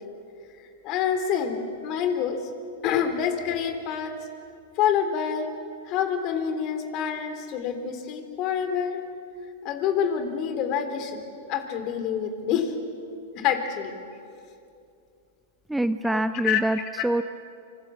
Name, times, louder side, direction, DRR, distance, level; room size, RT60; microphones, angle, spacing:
voice 1, 0.6-2.4 2.8-4.2 4.8-5.5 5.8-9.0 9.6-11.2 11.5-12.7 13.4-14.0 16.0-17.0, left 8 dB, 40° left, 7 dB, 3.6 m, -27 dB
voice 2, 15.7-16.8 17.0-17.2, right 1 dB, 5° right, 12 dB, 0.6 m, -24 dB
26.5 x 26.0 x 7.1 m, 2.5 s
figure-of-eight pair, 100°, 0 cm